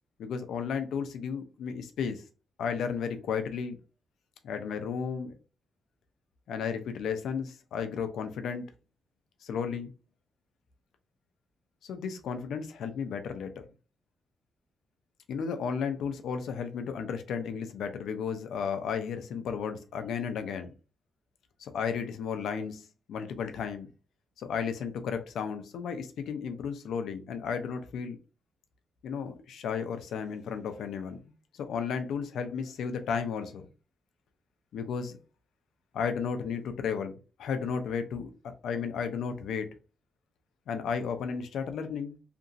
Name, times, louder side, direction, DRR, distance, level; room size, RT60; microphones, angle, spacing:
voice 1, 0.2-2.2 2.6-3.8 4.4-5.3 6.5-8.7 9.4-9.9 11.8-13.5 15.3-20.7 21.6-23.9 24.4-28.2 29.0-31.2 31.5-33.7 34.7-35.2 35.9-37.1 37.4-39.7 40.7-42.2, left 6 dB, 85° left, 0.5 m, -33 dB
2.9 x 2.5 x 2.5 m
wide cardioid pair, 160°, 0 cm